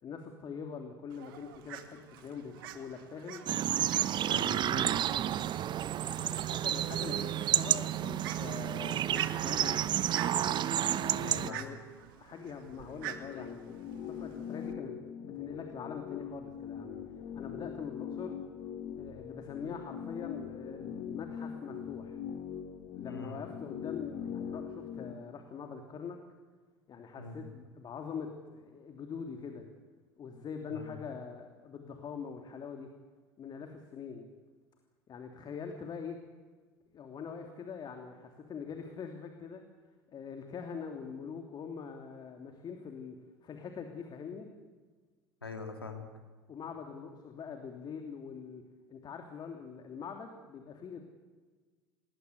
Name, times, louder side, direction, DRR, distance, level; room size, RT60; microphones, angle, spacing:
voice 1, 0.0-3.4 6.0-9.9 10.8-11.8 12.2-17.0 17.3-18.4 19.0-22.2 22.9-26.2 26.9-29.6 30.2-32.9 33.4-34.3 35.1-36.2 36.9-39.6 40.1-43.2 43.4-44.5 46.5-48.6 48.9-51.0, left 6 dB, 35° left, 4 dB, 3.1 m, -43 dB
Fowl, 1.1-14.7, right 11 dB, 65° right, 2.1 m, -48 dB
sound 1, 3.5-11.5, right 11 dB, 40° right, 0.9 m, -30 dB
voice 2, 4.3-4.9 11.2-11.6 23.1-23.4 27.2-27.5 30.6-31.0 45.4-46.1, left 3 dB, 90° left, 4 dB, 2.9 m, -43 dB
sound 2, 12.6-25.1, left 8 dB, 55° left, 2.3 m, -42 dB
28.0 x 20.5 x 8.2 m, 1.4 s
figure-of-eight pair, 70°, 12 cm